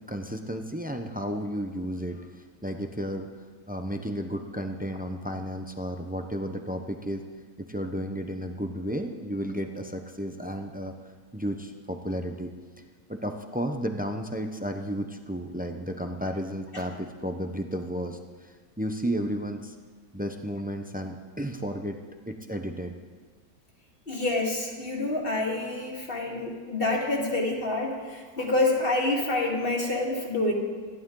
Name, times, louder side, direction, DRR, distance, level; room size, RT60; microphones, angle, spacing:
voice 1, 0.1-2.3 2.6-3.3 3.7-7.2 7.7-10.9 11.3-12.5 13.1-19.7 20.1-22.0 22.3-22.9, equal, 15° right, 5 dB, 0.3 m, -33 dB
voice 2, 24.1-30.5, left 2 dB, 30° left, -1 dB, 2.5 m, -27 dB
26.5 x 11.5 x 3.9 m, 1.5 s
omnidirectional pair, 1.8 m